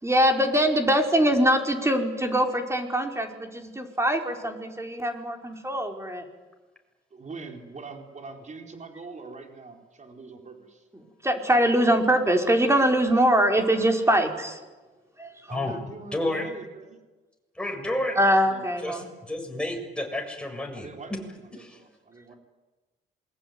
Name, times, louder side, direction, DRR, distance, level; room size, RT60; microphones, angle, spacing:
voice 1, 0.0-6.3 11.2-14.6 15.2-15.6 18.1-19.1, equal, 15° right, 4 dB, 4.6 m, -23 dB
voice 2, 7.1-10.7 15.5-17.0 18.5-18.6 20.7-21.1 21.5-22.3, right 4 dB, 35° right, 4 dB, 4.6 m, -43 dB
voice 3, 16.1-16.5 17.6-18.2 18.8-21.2 21.5-21.8, left 1 dB, 5° left, 2 dB, 7.1 m, -31 dB
27.0 x 22.5 x 9.6 m, 1.2 s
cardioid pair, 90°, 20 cm